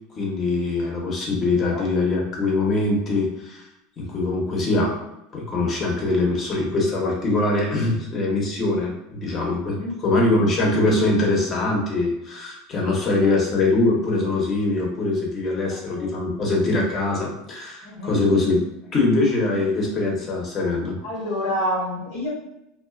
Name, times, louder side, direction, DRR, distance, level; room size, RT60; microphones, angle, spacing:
voice 1, 0.2-3.7 4.0-5.0 5.3-21.0, left 2 dB, 35° left, -1 dB, 0.9 m, -23 dB
voice 2, 9.7-10.0 12.9-13.3 15.6-16.1 17.8-18.2 21.0-22.3, left 1 dB, 85° left, -3 dB, 1.1 m, -29 dB
2.3 x 2.3 x 2.4 m, 0.85 s
supercardioid pair, 110°, 0 cm